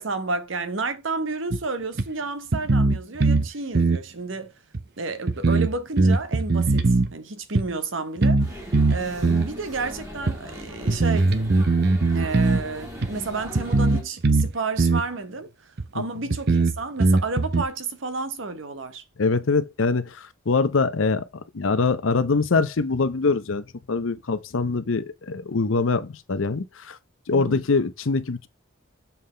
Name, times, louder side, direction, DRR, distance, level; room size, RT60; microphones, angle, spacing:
voice 1, 0.0-4.5 5.0-8.4 8.9-11.3 12.1-19.0 27.3-27.6, right 3 dB, 75° right, 1.0 m, -31 dB
sound 1, 1.5-1.6 2.0-2.1 2.5-3.5 3.7-4.0 4.7-4.8 5.3-7.1 7.5-7.7 8.2-8.5 8.7-9.5 10.3-10.4 10.9-12.6 13.0-13.1 13.5-14.5 14.8-15.1 15.8-15.9 16.3-17.6, right 3 dB, 55° right, 0.7 m, -20 dB
sound 2, 8.4-14.0, equal, 15° right, 1.7 m, -39 dB
voice 2, 19.2-20.1 20.5-21.2 21.5-23.6 23.9-27.0 27.3-28.5, left 4 dB, 85° left, 0.7 m, -23 dB
7.1 x 5.7 x 3.3 m
head